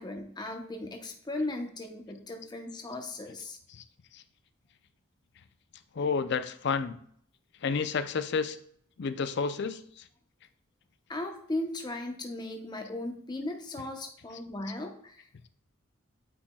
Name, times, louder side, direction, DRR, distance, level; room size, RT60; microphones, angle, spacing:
voice 1, 0.0-3.6 11.1-15.5, left 2 dB, 20° left, 4 dB, 0.8 m, -37 dB
voice 2, 6.0-7.0 7.6-8.6 9.0-10.0 13.8-13.9, left 5 dB, 55° left, 12 dB, 0.5 m, -30 dB
8.4 x 5.2 x 2.3 m, 0.62 s
head